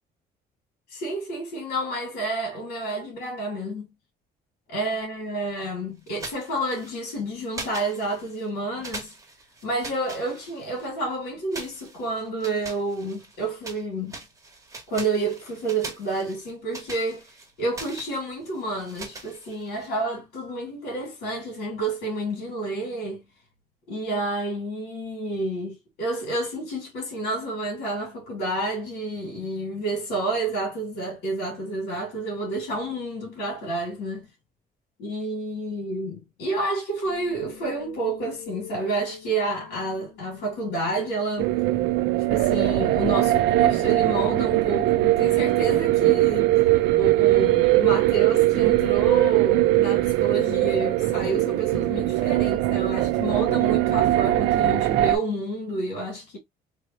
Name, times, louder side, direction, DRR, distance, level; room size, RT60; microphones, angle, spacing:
voice 1, 0.9-3.9 4.7-9.1 9.6-14.2 14.9-23.2 23.9-34.3 35.0-41.6 42.3-46.5 46.9-56.4, right 2 dB, 85° left, 2.3 m, -29 dB
sound 1, 6.1-7.2 7.5-8.5 8.8-10.9 11.5-13.8 14.1-19.9, right 3 dB, 20° right, 1.6 m, -41 dB
sound 2, 37.0-49.1, left 10 dB, 55° left, 1.7 m, -48 dB
sound 3, 41.4-55.2, right 16 dB, 85° right, 0.5 m, -21 dB
3.5 x 3.1 x 2.7 m
cardioid pair, 110°, 17 cm